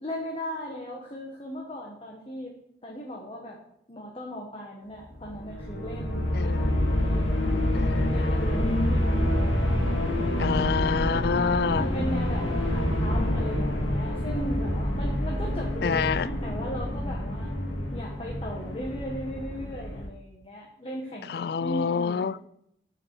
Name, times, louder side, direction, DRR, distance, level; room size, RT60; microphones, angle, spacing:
voice 1, 0.0-2.5 2.8-3.6 3.9-6.3 7.0-7.8 8.1-9.3 11.7-17.5 17.9-22.5, equal, 30° left, -1 dB, 1.3 m, -38 dB
sound 1, 5.1-20.1, left 1 dB, 80° left, 2.0 m, -27 dB
voice 2, 6.3-6.7 7.7-8.7 10.4-11.9 15.8-16.3 21.3-22.4, left 6 dB, 55° left, 19 dB, 0.3 m, -27 dB
7.5 x 6.5 x 7.6 m, 0.76 s
head